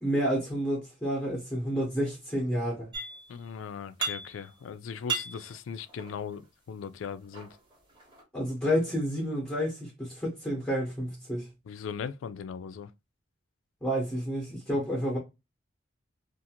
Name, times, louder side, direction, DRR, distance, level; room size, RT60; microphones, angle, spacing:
voice 1, 0.0-2.9 8.3-11.5 13.8-15.2, equal, 5° left, 0.8 m, -30 dB
sound 1, 2.9-3.5 3.7-4.6 4.9-6.5 7.1-8.2, right 4 dB, 25° right, 0.9 m, -36 dB
voice 2, 3.3-6.4 6.7-7.5 11.7-12.9 14.7-14.8, left 6 dB, 90° left, 0.3 m, -38 dB
2.5 x 2.4 x 2.7 m
head